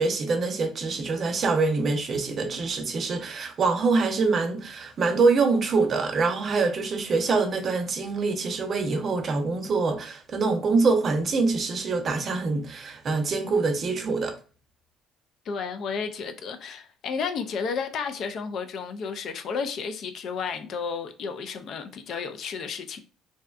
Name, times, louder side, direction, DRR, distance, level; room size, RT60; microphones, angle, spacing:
voice 1, 0.0-14.4, right 4 dB, 45° right, 0.5 m, -25 dB
voice 2, 15.5-23.0, left 5 dB, 60° left, 0.4 m, -32 dB
2.6 x 2.1 x 2.3 m
supercardioid pair, 70°, 0 cm